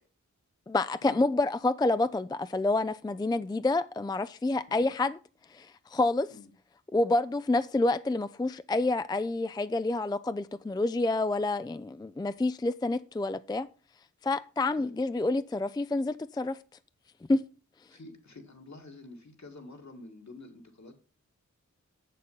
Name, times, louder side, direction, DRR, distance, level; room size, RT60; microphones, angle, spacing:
voice 1, 0.7-5.2 5.5-6.3 6.9-13.7 14.2-16.6 17.3-17.4, left 2 dB, 15° left, 0.4 m, -28 dB
voice 2, 17.9-20.9, left 2 dB, 60° left, 2.0 m, -48 dB
7.3 x 6.6 x 5.5 m
wide cardioid pair, 60°, 31 cm